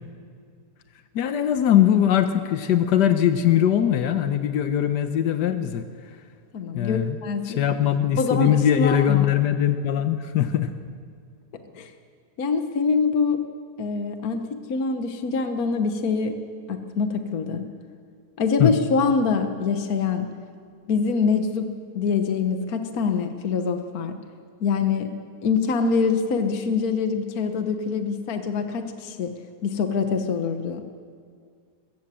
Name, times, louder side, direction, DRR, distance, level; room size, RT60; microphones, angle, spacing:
voice 1, 1.1-5.9 6.7-7.2 7.5-10.7 18.6-18.7, left 10 dB, 90° left, 9 dB, 1.5 m, -21 dB
voice 2, 6.5-7.6 8.2-9.3 11.7-11.9 12.4-13.5 13.8-16.4 16.7-17.6 18.4-20.3 20.9-24.2 24.6-25.1 25.4-29.3 29.6-30.8, left 5 dB, 65° left, 7 dB, 1.6 m, -24 dB
22.0 x 15.5 x 7.6 m, 2.1 s
omnidirectional pair, 1.8 m